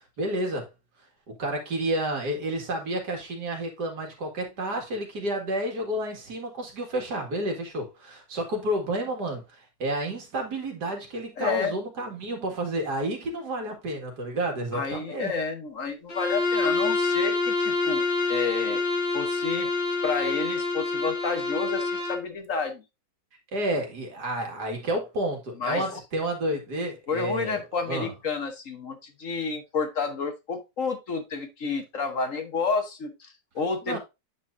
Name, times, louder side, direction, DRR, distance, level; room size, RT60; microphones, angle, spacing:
voice 1, 0.2-0.7 1.4-15.3 23.5-27.6 27.9-28.1 33.9-34.0, right 1 dB, 70° right, 2.6 m, -30 dB
voice 2, 11.4-11.7 14.7-18.0 18.3-18.8 19.1-19.7 20.0-22.8 25.6-26.0 27.1-34.0, left 5 dB, 50° left, 1.3 m, -30 dB
Bowed string instrument, 16.1-22.3, left 3 dB, 35° left, 1.6 m, -27 dB
8.7 x 6.0 x 2.6 m
omnidirectional pair, 1.8 m